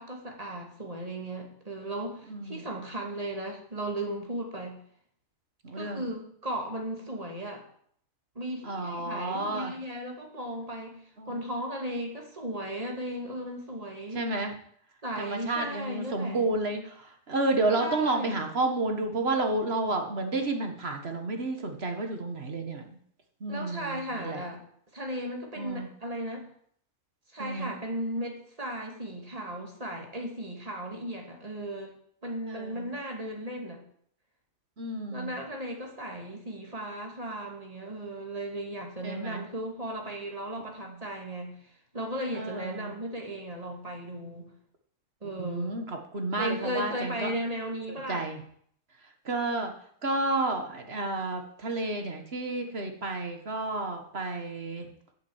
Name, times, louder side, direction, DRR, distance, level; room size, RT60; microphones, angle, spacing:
voice 1, 0.0-4.8 5.7-7.6 8.3-11.0 11.3-14.2 15.0-16.4 17.8-18.4 23.5-24.6 24.9-26.5 27.3-31.9 32.2-33.8 35.1-41.5 41.9-44.5 45.2-45.8 46.4-48.2, right 1 dB, 25° right, 1 dB, 2.4 m, -36 dB
voice 2, 2.3-2.7 5.6-6.1 8.6-9.7 11.2-11.4 14.1-14.5 15.2-23.0 23.4-24.4 25.6-25.9 27.4-27.7 32.5-32.9 34.8-35.3 39.0-39.5 40.9-41.0 42.3-42.9 45.4-47.3 47.9-48.4 49.0-49.7 50.0-54.9, right 2 dB, 40° right, 5 dB, 1.5 m, -31 dB
8.4 x 7.5 x 7.8 m, 0.63 s
omnidirectional pair, 1.7 m